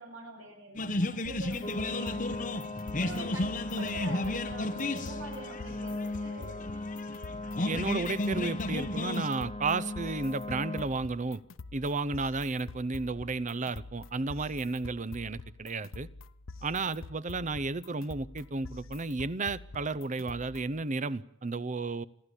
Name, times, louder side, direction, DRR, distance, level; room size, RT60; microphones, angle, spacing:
voice 1, 0.0-2.6 2.9-6.6, right 2 dB, 80° right, 2 dB, 7.9 m, -44 dB
sound 1, 0.8-9.3, left 2 dB, 40° left, 1.2 m, -34 dB
sound 2, 1.2-20.8, left 3 dB, 90° left, 0.9 m, -47 dB
sound 3, 1.6-10.8, left 2 dB, 25° left, 2.1 m, -39 dB
voice 2, 7.6-11.4 11.7-16.1 16.6-22.0, right 3 dB, 40° right, 16 dB, 0.7 m, -33 dB
30.0 x 11.5 x 8.3 m, 0.79 s
head